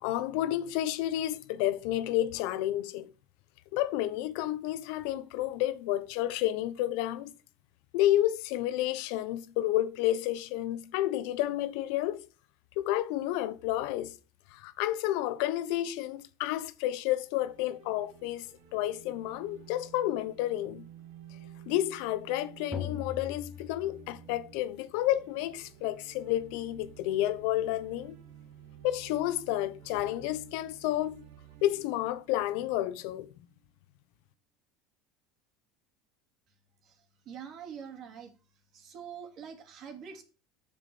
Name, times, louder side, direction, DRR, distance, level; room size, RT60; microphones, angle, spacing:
voice 1, 0.0-3.1 3.7-7.3 7.9-12.3 12.8-14.1 14.5-20.8 21.7-28.2 28.8-31.2 31.6-33.3, left 14 dB, 75° left, 0.9 m, -30 dB
sound 1, 17.2-33.3, right 10 dB, 80° right, 2.1 m, -53 dB
sound 2, 22.7-24.7, left 6 dB, ahead, 1.4 m, -40 dB
voice 2, 36.8-38.3 38.7-40.2, right 7 dB, 50° right, 2.7 m, -45 dB
7.3 x 6.8 x 6.9 m
supercardioid pair, 115°, 0 cm